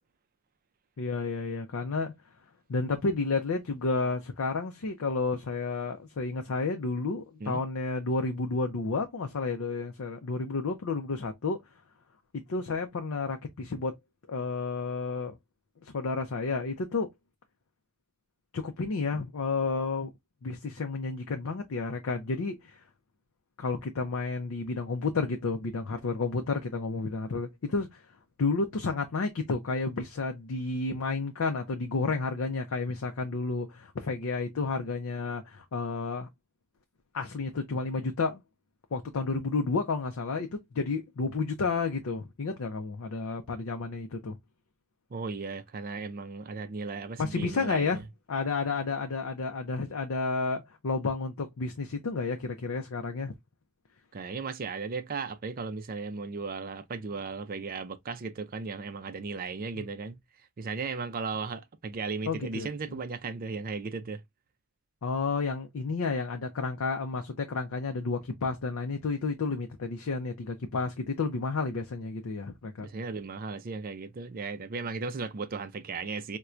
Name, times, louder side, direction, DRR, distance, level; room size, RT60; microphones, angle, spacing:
voice 1, 1.0-2.1 2.7-11.6 12.5-13.9 14.3-15.4 15.8-17.1 18.5-20.1 20.4-22.8 23.6-28.0 28.4-36.3 37.1-38.4 38.9-44.4 47.2-48.0 48.3-53.3 59.8-59.9 62.3-63.0 65.0-72.9, left 3 dB, 65° left, 0.5 m, -31 dB
voice 2, 45.1-48.0 54.1-60.2 60.6-64.2 72.8-76.4, right 4 dB, 40° right, 0.4 m, -36 dB
4.3 x 2.2 x 2.4 m
head